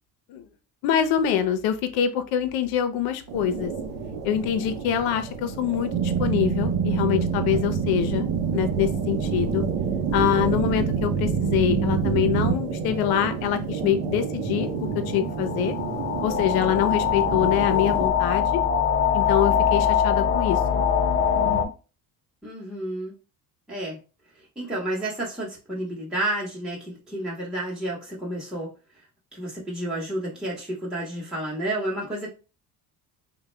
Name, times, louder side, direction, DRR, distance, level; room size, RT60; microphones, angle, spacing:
voice 1, 0.8-3.7 4.2-9.6 10.1-15.8 16.2-18.6 19.1-20.8 21.3-21.7, left 10 dB, 85° left, 10 dB, 0.7 m, -25 dB
sound 1, 3.3-18.1, right 5 dB, 75° right, 0.8 m, -32 dB
sound 2, 5.9-12.6, right 6 dB, 45° right, 0.5 m, -26 dB
sound 3, 14.9-21.6, left 8 dB, 35° left, 0.5 m, -23 dB
voice 2, 22.4-23.1 23.7-24.0 24.6-28.7 29.3-32.3, right 1 dB, ahead, -6 dB, 1.1 m, -30 dB
3.5 x 2.2 x 3.2 m, 0.33 s
cardioid pair, 105°, 36 cm